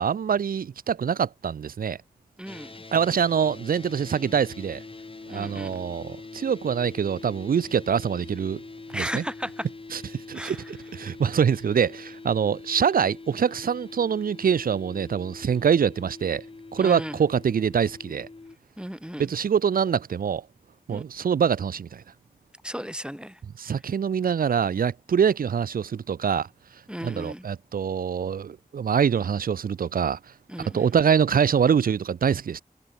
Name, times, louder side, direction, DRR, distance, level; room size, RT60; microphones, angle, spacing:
voice 1, 0.0-2.0 2.9-4.8 5.3-8.6 8.9-9.2 9.9-16.4 16.7-18.3 19.2-20.5 20.9-22.0 23.6-26.5 27.0-30.2 30.6-32.6, right 7 dB, 75° right, 0.4 m, -24 dB
voice 2, 2.4-2.7 5.3-5.8 8.9-9.7 10.3-10.6 16.8-17.2 18.8-19.3 20.9-21.0 22.6-23.4 26.9-27.5 30.5-30.9, equal, 5° right, 0.9 m, -35 dB
sound 1, 2.5-18.6, left 3 dB, 35° left, 0.8 m, -43 dB
wide cardioid pair, 55°, 15 cm